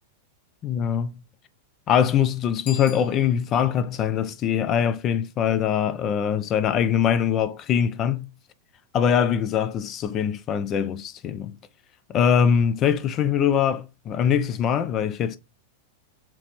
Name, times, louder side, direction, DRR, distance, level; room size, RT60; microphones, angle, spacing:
voice 1, 0.6-1.1 1.9-8.3 8.9-11.5 12.1-15.4, left 8 dB, 35° left, 0.4 m, -22 dB
Bicycle bell, 2.6-3.8, left 7 dB, 70° left, 1.3 m, -42 dB
3.0 x 2.9 x 4.2 m
hypercardioid pair, 110°, 0 cm